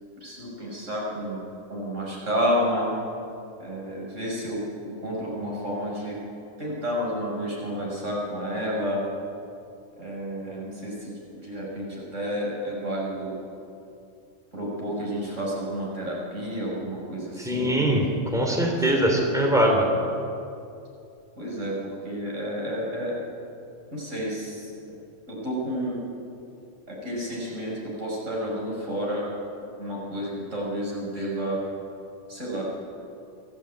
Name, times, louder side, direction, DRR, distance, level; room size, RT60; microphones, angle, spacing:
voice 1, 0.2-1.4 1.7-2.9 3.6-6.2 6.6-9.0 10.0-13.4 14.5-18.0 18.8-18.9 21.3-23.1 23.9-25.0 25.3-26.0 26.9-29.3 29.8-31.6 32.3-32.6, equal, 75° right, -4 dB, 6.9 m, -30 dB
voice 2, 17.4-18.1 18.3-19.9, right 1 dB, ahead, 0 dB, 3.5 m, -22 dB
23.0 x 16.0 x 8.9 m, 2.6 s
omnidirectional pair, 1.3 m